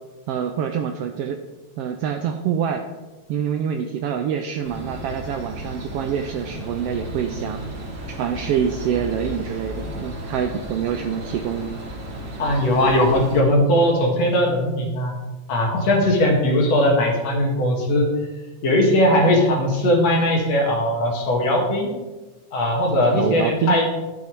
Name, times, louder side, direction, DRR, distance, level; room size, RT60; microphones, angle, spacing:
voice 1, 0.3-1.4 1.8-2.8 3.3-7.6 8.1-11.8 19.1-19.4 23.2-23.8, right 8 dB, 80° right, 5 dB, 1.4 m, -26 dB
sound 1, 4.6-13.4, right 1 dB, 45° right, 2.3 m, -34 dB
voice 2, 12.4-15.1 15.5-18.1 18.6-21.9 22.5-23.9, left 1 dB, 65° left, 0 dB, 3.0 m, -19 dB
12.0 x 7.2 x 4.6 m, 1.2 s
omnidirectional pair, 3.3 m